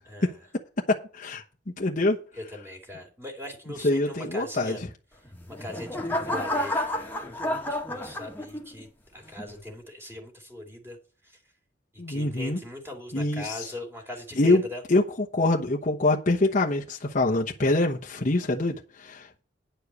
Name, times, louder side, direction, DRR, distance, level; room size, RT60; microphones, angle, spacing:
voice 1, 0.0-0.4 2.3-4.8 5.5-7.2 7.9-11.0 11.2-11.4 11.9-14.8, left 1 dB, 15° right, 2.9 m, -40 dB
voice 2, 0.9-1.4 1.8-2.2 3.8-4.8 12.0-12.6 13.1-13.6 14.4-14.6 14.9-15.0 15.3-19.4, left 2 dB, 45° left, 1.1 m, -24 dB
sound 1, 5.2-8.8 9.4-9.7, left 1 dB, 10° left, 1.7 m, -30 dB
10.0 x 5.0 x 8.1 m
head